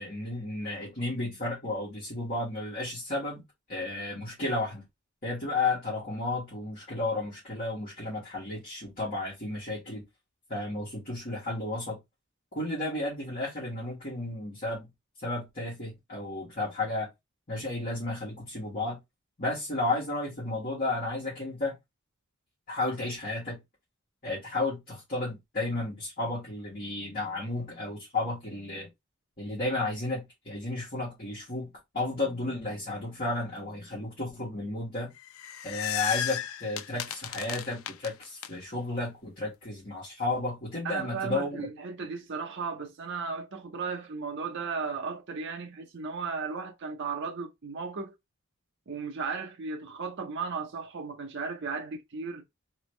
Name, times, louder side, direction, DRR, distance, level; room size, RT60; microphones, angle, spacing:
voice 1, 0.0-3.4 3.7-4.8 5.2-10.0 10.5-12.0 12.5-14.9 15.2-17.1 17.5-19.0 19.4-21.8 22.7-23.6 24.2-28.9 29.4-31.7 31.9-35.1 35.6-41.7, left 2 dB, 40° left, 1.6 m, -33 dB
sound 1, 35.2-38.5, left 10 dB, 75° left, 0.4 m, -34 dB
voice 2, 40.8-48.1 48.9-52.4, right 5 dB, 55° right, 0.6 m, -35 dB
3.3 x 3.0 x 3.2 m
head